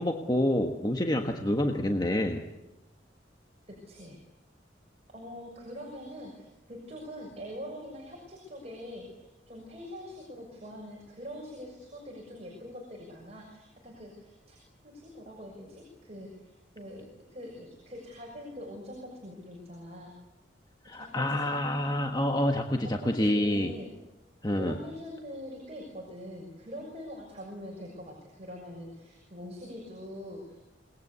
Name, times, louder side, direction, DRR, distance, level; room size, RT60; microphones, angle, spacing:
voice 1, 0.0-2.4 20.8-23.7 24.4-24.8, left 1 dB, 20° left, 3 dB, 1.5 m, -27 dB
voice 2, 1.6-1.9 3.9-4.2 5.1-14.6 14.8-17.0 17.3-20.1 20.9-21.4 23.0-23.9 24.6-30.6, equal, 35° right, 0 dB, 6.4 m, -43 dB
27.0 x 21.0 x 8.3 m, 0.99 s
head